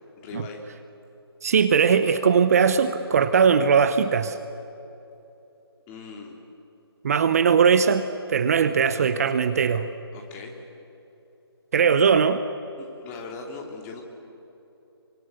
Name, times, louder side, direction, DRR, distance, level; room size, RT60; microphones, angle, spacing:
voice 1, 0.2-0.6 5.9-6.4 10.1-10.6 12.8-14.0, left 4 dB, 15° left, 1 dB, 2.9 m, -39 dB
voice 2, 1.4-4.4 7.0-9.9 11.7-12.4, right 6 dB, 35° right, 11 dB, 0.9 m, -20 dB
27.5 x 25.0 x 8.2 m, 3.0 s
figure-of-eight pair, 150°, 13 cm